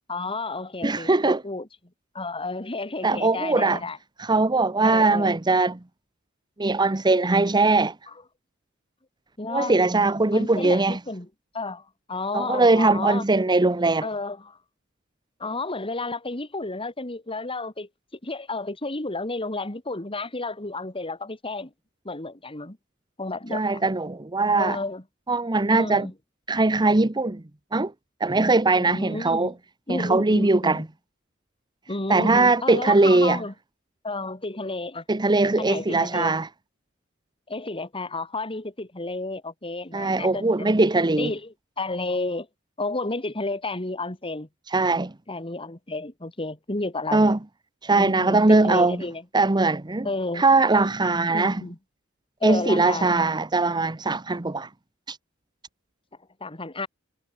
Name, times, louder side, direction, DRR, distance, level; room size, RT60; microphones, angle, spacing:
voice 1, 0.1-1.7 2.1-4.0 4.8-5.3 9.4-9.8 10.3-11.3 11.5-13.2 14.0-14.6 15.4-17.9 18.2-21.7 22.0-22.8 23.2-23.8 24.6-25.0 25.7-26.1 28.8-29.5 29.9-30.8 31.9-33.5 34.0-35.0 35.6-36.3 37.5-40.7 41.2-42.5 42.8-44.5 45.3-47.3 47.9-49.2 50.0-50.5 51.3-51.8 52.4-53.2 56.4-56.9, left 2 dB, 25° left, 2.6 m, -31 dB
voice 2, 0.8-1.4 3.0-3.8 4.2-5.8 6.6-7.9 9.5-11.0 12.3-14.1 23.5-24.8 25.3-26.1 26.5-27.4 27.7-27.9 28.2-29.5 29.9-30.9 32.1-33.4 35.1-36.5 39.9-41.3 44.7-45.1 47.1-47.4 47.8-49.0 49.3-50.1 50.4-51.6 52.4-54.7 55.1-55.2, right 3 dB, 20° right, 0.8 m, -21 dB
head